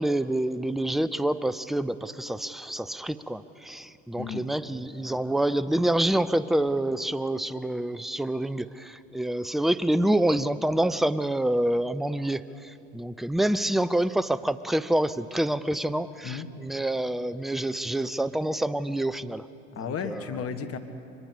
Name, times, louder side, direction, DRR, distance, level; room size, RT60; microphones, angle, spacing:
voice 1, 0.0-19.5 19.8-20.3, right 1 dB, ahead, 15 dB, 0.4 m, -27 dB
voice 2, 4.2-4.5 16.2-16.5 19.7-20.8, left 7 dB, 35° left, 8 dB, 1.6 m, -33 dB
23.5 x 21.0 x 6.9 m, 2.9 s
hypercardioid pair, 75°, 40 cm